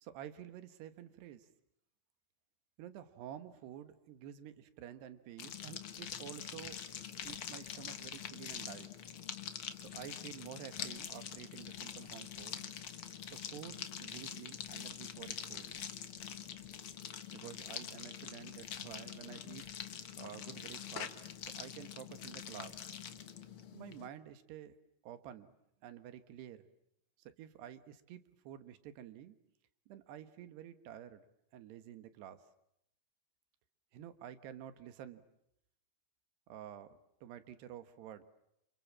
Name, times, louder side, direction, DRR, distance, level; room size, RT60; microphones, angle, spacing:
voice 1, 0.0-1.5 2.8-6.8 7.2-8.9 9.8-12.7 13.3-15.7 17.3-19.6 20.2-21.2 21.6-22.8 23.7-24.7 25.0-25.5 25.8-26.7 27.2-29.4 29.9-31.3 31.5-32.5 33.9-35.3 36.5-38.2, right 10 dB, 85° right, 11 dB, 3.5 m, -50 dB
sound 1, 5.4-24.1, left 9 dB, 75° left, 1.2 m, -45 dB
28.5 x 28.0 x 7.4 m, 0.79 s
omnidirectional pair, 4.7 m